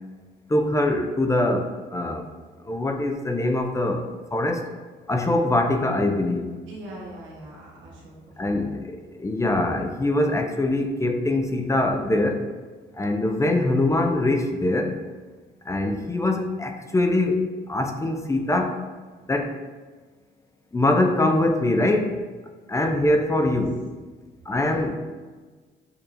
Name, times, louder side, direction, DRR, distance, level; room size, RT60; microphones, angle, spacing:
voice 1, 0.5-2.3 2.6-4.1 4.3-4.6 5.1-6.5 8.4-12.4 13.0-15.0 15.7-17.4 17.7-18.8 19.3-19.6 20.7-22.2 22.7-23.8 24.5-24.9, left 1 dB, 15° left, 4 dB, 0.5 m, -23 dB
voice 2, 6.7-8.8 23.4-23.5, right 1 dB, 75° right, -5 dB, 1.2 m, -42 dB
6.8 x 2.8 x 2.6 m, 1.4 s
cardioid pair, 90°, 20 cm